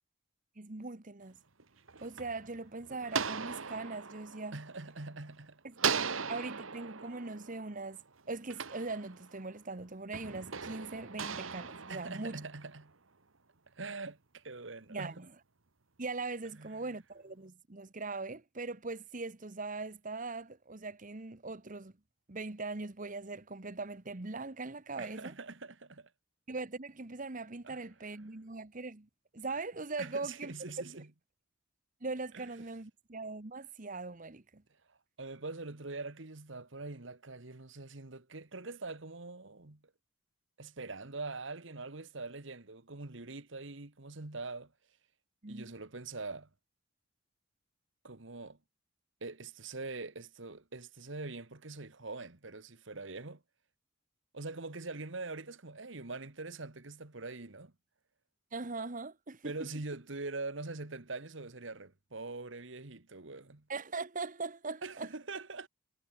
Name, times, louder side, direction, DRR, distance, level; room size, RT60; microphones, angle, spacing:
voice 1, 0.6-1.4 2.0-4.6 5.6-5.7 6.3-8.0 8.3-12.4 14.9-15.3 16.0-21.9 22.3-25.3 26.5-29.1 29.3-30.5 30.8-31.0 32.0-34.6 45.4-45.7 58.5-59.5 63.7-65.1, right 3 dB, 40° right, 1.3 m, -40 dB
sound 1, 1.6-5.3 5.8-9.5 10.1-12.8, right 6 dB, 90° right, 1.9 m, -39 dB
voice 2, 4.5-5.6 6.1-6.3 11.9-12.9 13.7-15.2 16.5-16.9 25.0-26.1 27.6-27.8 30.0-31.1 32.3-32.5 34.9-39.8 40.6-44.7 45.5-46.5 48.0-48.6 49.2-53.4 54.3-57.7 59.4-63.7 64.8-65.7, right 3 dB, 65° right, 1.6 m, -43 dB
head